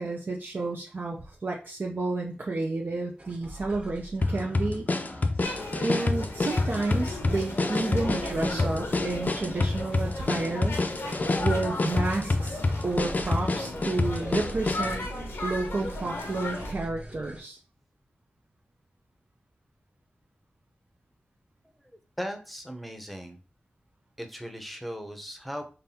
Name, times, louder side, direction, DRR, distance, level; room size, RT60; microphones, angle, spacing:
voice 1, 0.0-4.9 5.8-10.8 11.4-15.0 15.4-17.6, right 3 dB, 55° right, -1 dB, 0.5 m, -31 dB
sound 1, 3.2-17.4, right 1 dB, 35° right, 1.2 m, -44 dB
sound 2, 4.2-15.0, left 2 dB, 45° left, 0.5 m, -27 dB
sound 3, 5.4-16.7, left 2 dB, 85° left, 0.9 m, -36 dB
voice 2, 22.2-23.4 24.2-25.7, equal, ahead, 5 dB, 0.8 m, -37 dB
3.9 x 3.3 x 2.8 m, 0.36 s
cardioid pair, 45°, 4 cm